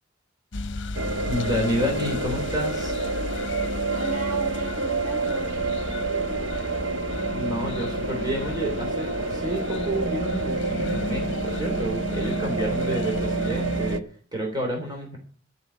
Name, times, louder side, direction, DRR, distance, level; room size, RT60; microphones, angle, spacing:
sound 1, 0.5-14.0, left 3 dB, 70° left, 0.9 m, -35 dB
sound 2, 0.9-14.0, right 3 dB, 75° right, 1.3 m, -28 dB
voice 1, 1.3-3.0 7.3-14.0 14.3-15.2, equal, 20° right, 0 dB, 3.3 m, -29 dB
voice 2, 3.9-6.7, right 2 dB, 45° right, 0 dB, 2.2 m, -36 dB
12.0 x 6.7 x 8.4 m, 0.43 s
head